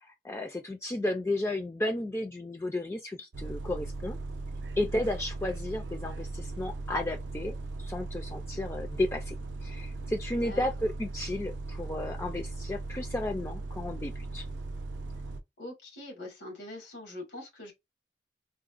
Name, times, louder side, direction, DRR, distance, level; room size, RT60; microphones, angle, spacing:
voice 1, 0.0-4.2 4.8-9.4 9.6-14.4, left 1 dB, 15° left, 0.3 m, -33 dB
Bus, 3.3-15.4, right 2 dB, 85° right, 0.5 m, -38 dB
voice 2, 15.6-17.7, left 1 dB, 90° left, 1.9 m, -43 dB
3.8 x 2.1 x 2.4 m
head